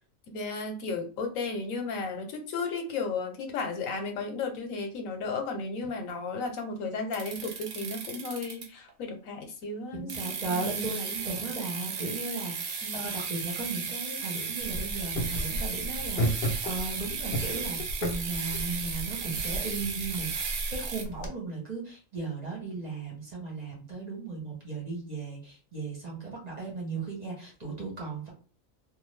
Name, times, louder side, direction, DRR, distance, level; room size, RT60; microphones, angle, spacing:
voice 1, 0.3-11.5 12.8-13.0, left 3 dB, 85° left, 4 dB, 1.1 m, -34 dB
sound 1, 7.1-8.9 10.1-21.0, right 5 dB, 65° right, 0.5 m, -35 dB
voice 2, 9.9-28.3, right 3 dB, 35° right, -3 dB, 1.0 m, -36 dB
sound 2, 14.6-21.3, equal, 55° left, 0.7 m, -34 dB
2.6 x 2.3 x 3.1 m, 0.36 s
omnidirectional pair, 1.4 m